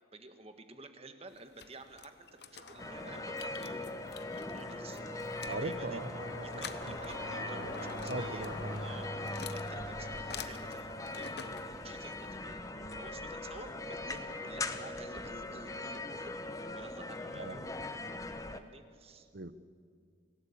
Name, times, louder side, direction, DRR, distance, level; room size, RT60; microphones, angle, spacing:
voice 1, 0.1-4.0 4.3-6.0 6.4-16.4 16.7-17.6 18.5-19.2, right 2 dB, 30° right, 7 dB, 1.7 m, -51 dB
sound 1, 1.3-12.4, left 7 dB, 55° left, 1.0 m, -50 dB
sound 2, 2.6-12.9, equal, 70° left, 5.0 m, -45 dB
sound 3, 2.8-18.6, left 2 dB, 15° left, 1.0 m, -41 dB
voice 2, 5.5-6.6 8.1-9.0 17.3-17.7 19.3-19.5, right 2 dB, 55° right, 14 dB, 0.9 m, -40 dB
25.5 x 17.0 x 8.7 m, 2.1 s
head